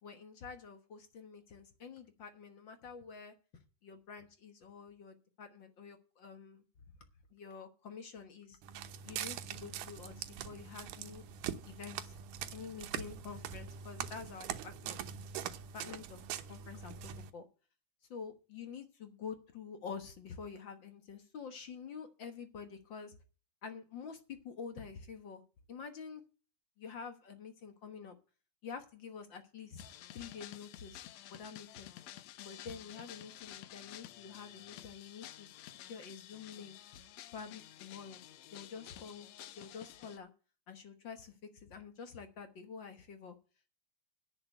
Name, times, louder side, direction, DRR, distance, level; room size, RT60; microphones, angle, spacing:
voice 1, 0.0-3.3 3.8-6.6 7.3-8.6 9.0-11.2 11.6-12.2 12.5-15.0 15.7-16.2 16.5-17.4 18.1-23.2 23.6-25.4 25.7-26.2 26.8-28.1 28.6-29.9 30.1-31.9 32.4-35.5 35.8-36.8 37.3-38.2 38.5-40.3 40.7-43.4, left 6 dB, 50° left, 8 dB, 1.6 m, -48 dB
Walk footsteps, 8.6-17.3, right 9 dB, 90° right, 2.5 m, -43 dB
sound 1, 29.8-40.2, left 13 dB, 75° left, 1.8 m, -52 dB
10.5 x 6.4 x 8.3 m, 0.35 s
omnidirectional pair, 3.5 m